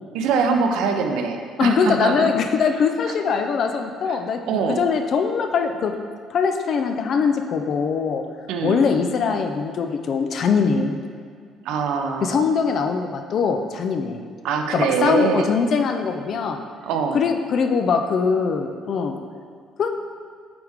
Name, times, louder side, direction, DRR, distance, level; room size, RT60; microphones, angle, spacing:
voice 1, 0.1-2.3 3.1-3.2 4.5-4.8 8.5-8.9 11.6-12.4 14.4-15.5 16.8-17.2, right 5 dB, 75° right, 4 dB, 0.7 m, -23 dB
voice 2, 1.6-5.9 6.3-8.2 8.6-11.0 12.2-14.3 14.7-16.6 17.1-19.2 19.8-19.9, left 5 dB, 40° left, 6 dB, 0.4 m, -22 dB
8.2 x 4.7 x 3.6 m, 2.1 s
cardioid pair, 175°, 0 cm